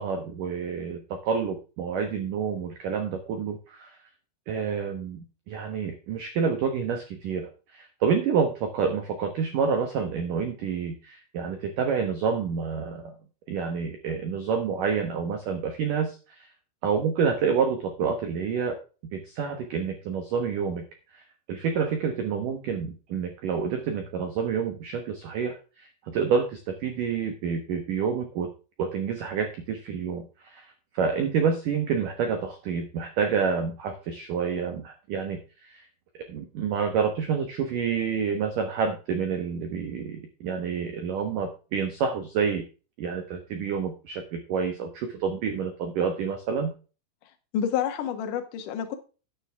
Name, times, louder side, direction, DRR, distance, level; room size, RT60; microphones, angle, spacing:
voice 1, 0.0-4.0 4.5-13.1 13.5-16.5 16.8-18.8 19.1-20.8 21.1-21.2 21.5-28.5 28.8-35.8 36.3-42.7 43.0-46.7, right 6 dB, 85° right, 6 dB, 1.8 m, -28 dB
voice 2, 47.5-48.9, left 9 dB, 70° left, 6 dB, 2.0 m, -28 dB
10.0 x 9.8 x 3.4 m, 0.34 s
omnidirectional pair, 5.8 m